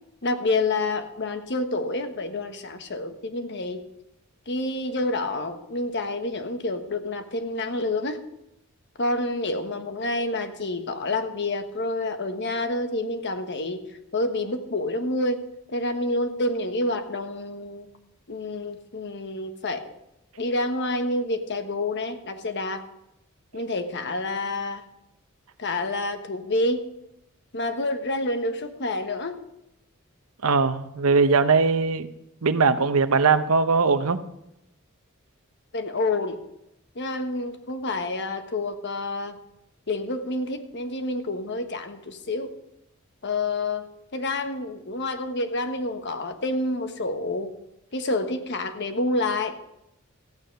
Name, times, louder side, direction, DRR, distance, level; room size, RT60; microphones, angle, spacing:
voice 1, 0.2-3.8 4.5-8.2 9.0-13.8 14.1-15.4 15.7-17.9 18.3-19.9 20.4-22.9 23.5-24.8 25.6-26.9 27.5-29.4 35.7-36.4 36.9-39.4 39.9-42.5 43.2-43.9 44.1-47.5 47.9-49.6, left 2 dB, 55° left, 7 dB, 1.2 m, -28 dB
voice 2, 30.4-32.1 32.4-34.2, right 4 dB, 80° right, 11 dB, 0.8 m, -20 dB
14.5 x 9.1 x 5.3 m, 0.84 s
head